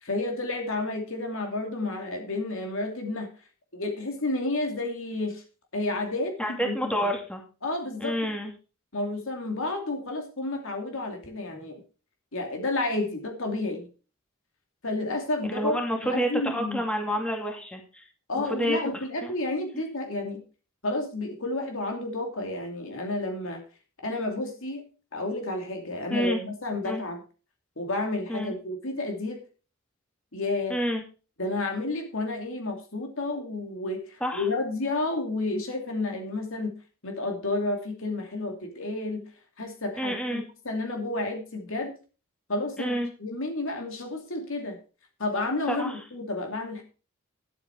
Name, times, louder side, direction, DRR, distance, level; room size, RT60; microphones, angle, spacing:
voice 1, 0.0-3.3 3.7-5.4 5.7-6.3 6.6-6.8 7.6-8.3 8.9-11.8 12.3-13.9 14.8-15.8 16.0-16.8 18.3-20.4 20.8-23.6 24.0-24.8 25.1-27.2 27.8-29.4 30.3-30.8 31.4-36.7 37.0-39.2 39.6-41.9 42.5-44.8 45.2-46.8, left 2 dB, 65° left, 3 dB, 2.7 m, -31 dB
voice 2, 6.4-7.4 8.0-8.5 15.4-18.0 18.4-18.8 19.2-19.3 26.1-26.4 26.8-27.0 28.3-28.6 30.7-31.0 34.2-34.5 40.0-40.5 42.8-43.1 45.7-45.9, equal, 5° left, 2 dB, 2.5 m, -29 dB
11.0 x 8.7 x 4.6 m, 0.35 s
head